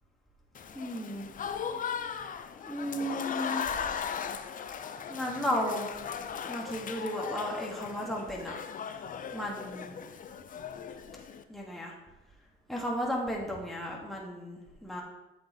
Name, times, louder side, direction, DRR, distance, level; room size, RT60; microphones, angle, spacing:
Applause / Crowd, 0.5-11.4, left 7 dB, 45° left, 0.5 m, -38 dB
voice 1, 0.7-1.3 2.6-3.7 5.1-5.9 6.5-8.6 9.3-10.0 11.5-11.9 12.7-15.0, equal, ahead, -2 dB, 1.3 m, -34 dB
7.6 x 6.3 x 2.8 m, 1.0 s
cardioid pair, 90°, 20 cm